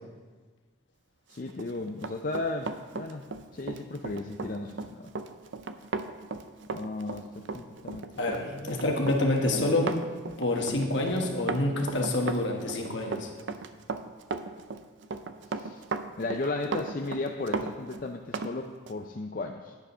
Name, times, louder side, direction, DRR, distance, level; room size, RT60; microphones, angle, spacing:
voice 1, 1.3-3.3 3.5-5.1 6.7-8.1 8.4-8.8 9.5-9.8 15.5-15.8 16.2-19.7, left 2 dB, 40° left, 3 dB, 0.5 m, -35 dB
Run, 1.5-18.5 18.9-19.0, right 4 dB, 60° right, 0.5 m, -36 dB
voice 2, 8.2-9.9 10.4-13.3, left 2 dB, 60° left, 1 dB, 1.5 m, -27 dB
10.0 x 6.9 x 5.6 m, 1.4 s
head